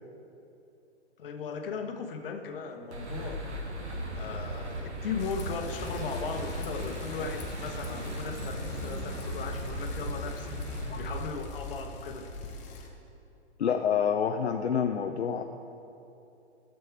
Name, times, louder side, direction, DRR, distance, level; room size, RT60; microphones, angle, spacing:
voice 1, 1.2-3.4 4.1-10.6 10.9-12.3, left 5 dB, 55° left, 5 dB, 1.2 m, -37 dB
sound 1, 2.9-11.2, right 1 dB, 80° right, 1.4 m, -37 dB
Bicycle, 5.2-12.9, left 2 dB, 20° left, 1.0 m, -41 dB
voice 2, 13.6-15.4, left 7 dB, 75° left, 5 dB, 0.6 m, -27 dB
12.5 x 7.6 x 4.7 m, 2.8 s
figure-of-eight pair, 120°, 34 cm